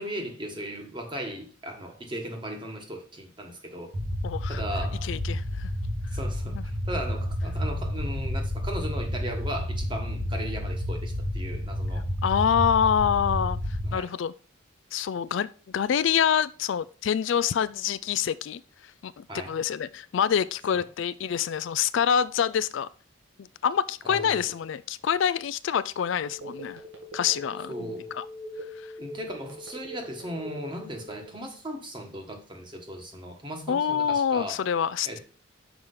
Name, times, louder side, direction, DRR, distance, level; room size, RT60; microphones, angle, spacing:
voice 1, 0.0-4.0 4.5-5.1 6.1-6.5 6.9-12.1 13.8-14.1 19.3-19.6 24.0-24.5 27.7-28.1 29.0-34.6 35.0-35.2, equal, 25° right, 1.4 m, -37 dB
sound 1, 3.9-13.9, left 1 dB, 50° right, 1.5 m, -30 dB
voice 2, 4.2-4.6 5.0-5.7 6.5-6.6 12.2-13.6 13.9-14.3 14.9-18.6 19.0-22.9 23.4-26.8 27.1-28.3 33.7-35.2, left 8 dB, 70° left, 0.3 m, -26 dB
Telephone, 26.2-31.5, equal, 70° right, 2.0 m, -41 dB
6.0 x 5.0 x 5.5 m
head